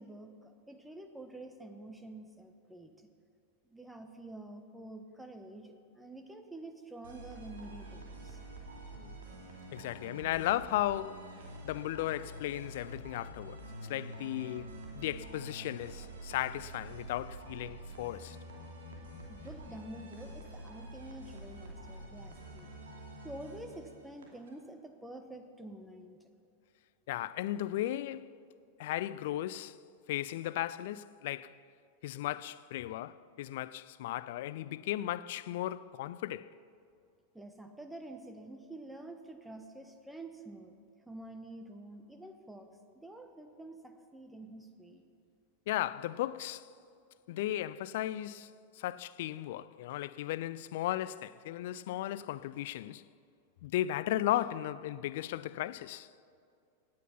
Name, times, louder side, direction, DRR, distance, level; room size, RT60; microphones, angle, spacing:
voice 1, 0.0-3.1 3.7-8.4 19.3-22.7 23.2-26.3 37.3-45.0, right 1 dB, 5° right, 1.0 m, -48 dB
sound 1, 7.0-24.5, right 1 dB, 65° right, 2.7 m, -47 dB
voice 2, 9.7-11.4 11.6-18.4 27.1-28.3 28.8-29.8 30.1-31.6 32.0-36.5 45.7-46.7 47.3-53.0 53.6-56.1, left 14 dB, 55° left, 0.4 m, -36 dB
17.0 x 9.5 x 5.7 m
figure-of-eight pair, 90°, 0 cm